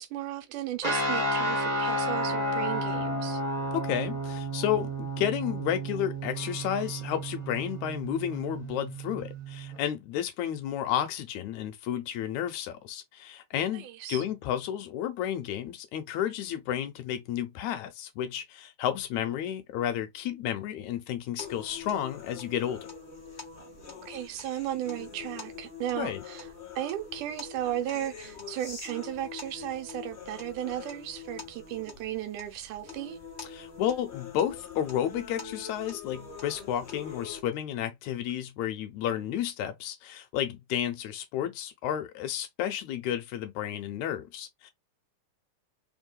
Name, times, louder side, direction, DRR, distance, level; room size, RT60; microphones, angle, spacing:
voice 1, 0.0-3.4 13.7-14.2 24.0-26.5 26.8-33.2, right 12 dB, 85° right, 2.3 m, -35 dB
sound 1, 0.8-9.8, right 1 dB, 20° right, 1.2 m, -32 dB
voice 2, 3.7-22.9 25.9-26.2 33.4-44.7, left 10 dB, 75° left, 2.0 m, -32 dB
sound 2, 21.4-37.4, left 5 dB, 30° left, 0.9 m, -44 dB
4.4 x 3.6 x 2.3 m
omnidirectional pair, 3.5 m